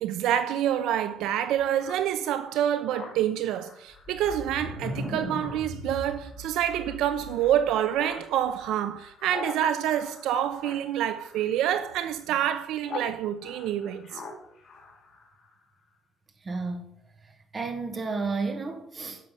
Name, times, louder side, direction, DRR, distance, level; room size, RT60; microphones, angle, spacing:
voice 1, 0.0-14.2, right 10 dB, 75° right, 0.7 m, -27 dB
Speech synthesizer, 1.8-13.1 13.4-15.6, left 5 dB, 40° left, 2.9 m, -45 dB
sound 1, 3.9-7.7, left 1 dB, ahead, 2.8 m, -38 dB
voice 2, 16.4-16.9 17.5-19.3, right 4 dB, 25° right, 1.8 m, -31 dB
11.0 x 6.4 x 7.6 m
cardioid pair, 145°, 0 cm